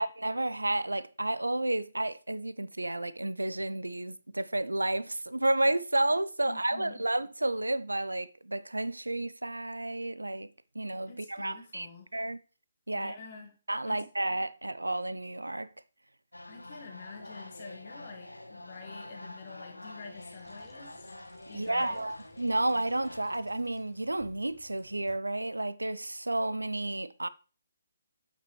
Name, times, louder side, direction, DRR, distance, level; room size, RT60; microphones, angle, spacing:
voice 1, 0.0-10.5 10.8-11.9 12.1-12.4 12.9-13.2 13.7-15.7 21.5-27.3, right 1 dB, 80° right, 0.3 m, -31 dB
voice 2, 6.4-7.0 11.1-12.1 12.9-13.5 13.8-14.1 16.5-21.2 21.5-22.0, left 5 dB, 40° left, 1.9 m, -47 dB
sound 1, 16.3-23.4, left 1 dB, 85° left, 0.6 m, -47 dB
sound 2, 20.1-25.1, left 3 dB, 10° left, 1.4 m, -62 dB
8.3 x 6.0 x 3.1 m
figure-of-eight pair, 140°, 0 cm